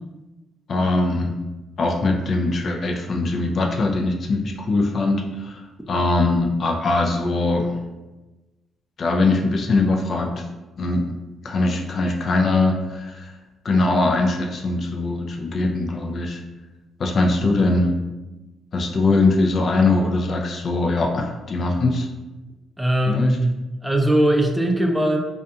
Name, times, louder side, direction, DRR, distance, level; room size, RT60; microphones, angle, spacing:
voice 1, 0.7-1.3 1.8-5.6 5.9-7.7 9.0-10.4 10.8-11.0 11.4-13.3 13.6-16.4 17.0-17.9 18.7-22.1 23.1-23.4, left 2 dB, 55° left, 1 dB, 0.4 m, -21 dB
voice 2, 22.8-25.2, right 1 dB, 10° right, 3 dB, 0.4 m, -20 dB
2.4 x 2.2 x 2.7 m, 1.1 s
supercardioid pair, 60°, 0 cm